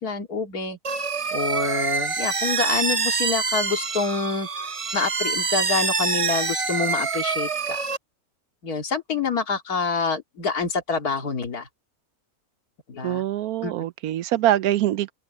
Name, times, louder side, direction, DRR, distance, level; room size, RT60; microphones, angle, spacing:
voice 1, 0.0-0.8 1.3-7.9 8.6-11.7 12.9-13.2 13.6-13.9, left 4 dB, 75° left, 2.7 m, -27 dB
sound 1, 0.8-8.0, right 5 dB, 35° right, 0.5 m, -26 dB
voice 2, 13.0-15.1, right 13 dB, 75° right, 1.1 m, -23 dB
omnidirectional pair, 1.6 m